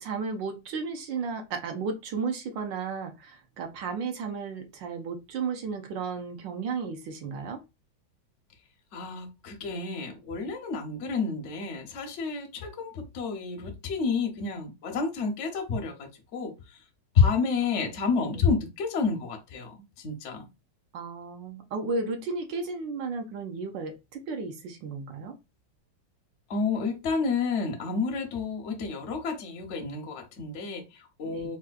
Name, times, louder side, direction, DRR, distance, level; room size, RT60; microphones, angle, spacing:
voice 1, 0.0-7.6 20.9-25.4 31.2-31.5, right 4 dB, 75° right, 1.3 m, -34 dB
voice 2, 8.9-16.5 17.1-20.4 26.5-31.6, left 5 dB, 65° left, 0.7 m, -29 dB
4.2 x 2.2 x 2.3 m
omnidirectional pair, 2.1 m